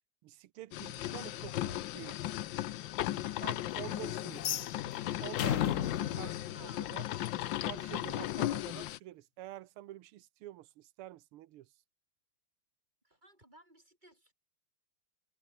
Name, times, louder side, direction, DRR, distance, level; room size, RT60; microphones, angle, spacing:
voice 1, 0.2-2.2 3.4-4.5 5.2-7.0 7.7-11.7, right 14 dB, 85° right, 1.8 m, -48 dB
sound 1, 0.7-9.0, left 14 dB, 70° left, 1.3 m, -36 dB
sound 2, 4.3-7.4, left 11 dB, 90° left, 0.7 m, -35 dB
voice 2, 6.2-7.2 13.0-14.3, right 1 dB, 20° right, 6.7 m, -59 dB
omnidirectional pair, 2.4 m